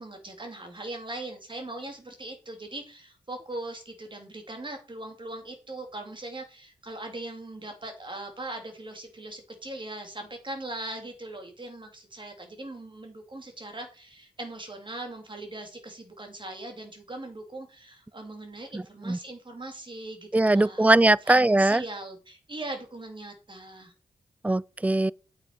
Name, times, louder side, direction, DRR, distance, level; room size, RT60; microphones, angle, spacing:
voice 1, 0.0-20.9 21.3-23.9, right 2 dB, 35° right, 2.9 m, -40 dB
voice 2, 18.7-19.2 20.3-21.8 24.4-25.1, right 2 dB, 10° right, 0.3 m, -21 dB
8.6 x 5.9 x 4.7 m
cardioid pair, 45°, 14 cm